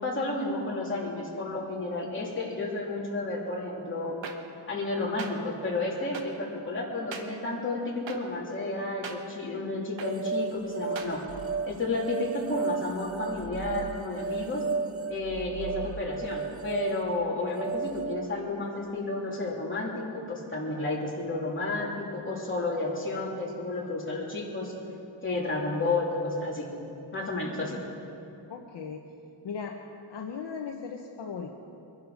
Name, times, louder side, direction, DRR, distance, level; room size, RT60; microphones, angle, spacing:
voice 1, 0.0-4.2 4.7-11.2 11.7-14.6 15.1-24.7 25.2-26.7 27.1-27.8, left 2 dB, 25° left, -4 dB, 3.4 m, -31 dB
sound 1, 4.2-4.3 5.2-5.3 6.1-6.2 7.1-7.2 8.1-8.2 9.0-9.2 10.0-10.1 10.9-11.1, right 6 dB, 70° right, 1.4 m, -38 dB
sound 2, 10.0-18.3, right 5 dB, 30° right, 0.4 m, -34 dB
voice 2, 28.5-29.1 29.4-31.5, left 6 dB, 60° left, 2 dB, 1.1 m, -38 dB
24.0 x 11.5 x 5.2 m, 2.7 s
wide cardioid pair, 145°, 47 cm